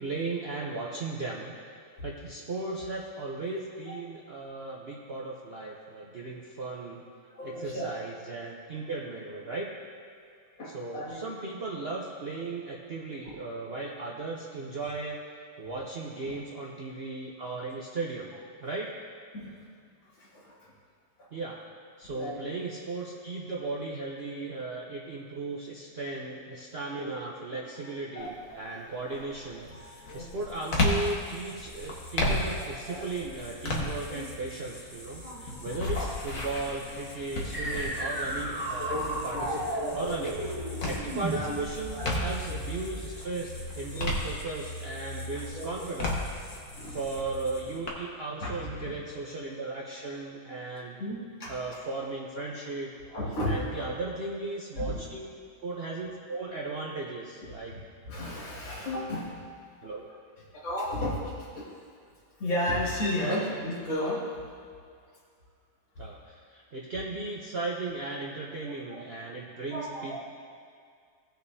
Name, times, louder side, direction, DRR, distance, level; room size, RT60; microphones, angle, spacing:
voice 1, 0.0-1.6 2.0-7.0 7.4-9.7 10.7-18.3 18.6-18.9 21.3-21.6 22.0-39.6 39.9-40.4 40.8-46.1 46.9-51.0 51.5-52.9 53.5-55.3 55.6-57.7 59.8-60.1 63.2-63.5 66.0-70.2, right 3 dB, 75° right, -3 dB, 0.5 m, -36 dB
voice 2, 7.3-8.0 10.6-11.2 16.2-16.3 19.3-19.7 20.1-20.7 22.1-22.5 27.0-27.2 27.5-27.8 28.1-28.9 29.7-30.4 32.6-33.0 34.1-34.3 35.1-35.7 37.6-37.7 38.8-40.1 40.9-41.0 41.3-41.6 42.0-42.1 43.9-44.0 44.4-44.5 45.0-45.2 45.5-45.7 46.8-47.0 48.4-49.0 51.0-51.5 53.1-53.9 54.8-54.9 57.7-59.4 60.6-61.7 62.4-64.3 68.6-69.0 69.7-70.2, left 1 dB, 70° left, -7 dB, 3.2 m, -34 dB
sound 1, 28.2-28.6 29.1-42.6 43.0-44.9 45.3-47.9, left 2 dB, 45° left, 1.5 m, -34 dB
sound 2, 29.6-48.0, left 1 dB, 25° left, 1.2 m, -45 dB
sound 3, 37.5-43.3, right 1 dB, 20° right, 0.7 m, -34 dB
17.5 x 6.4 x 2.7 m, 2.2 s
omnidirectional pair, 2.2 m